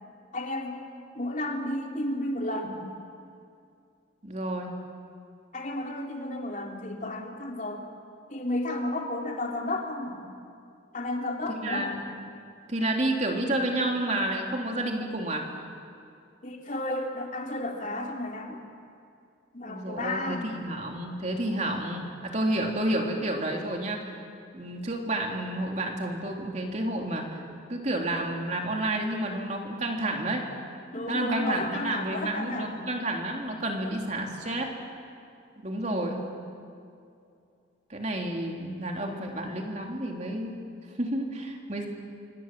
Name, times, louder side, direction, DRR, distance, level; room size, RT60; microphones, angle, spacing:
voice 1, 0.3-0.8 1.1-2.8 5.5-7.8 8.3-10.2 10.9-12.0 16.4-18.6 19.5-20.5 30.9-32.7, left 1 dB, 40° left, 1 dB, 3.1 m, -32 dB
voice 2, 4.2-4.7 11.5-12.0 12.7-15.5 19.6-24.0 24.5-27.4 27.7-30.5 31.1-34.7 35.6-36.3 37.9-40.6 41.0-41.9, right 1 dB, 35° right, 1 dB, 3.3 m, -30 dB
27.0 x 25.0 x 7.6 m, 2.5 s
head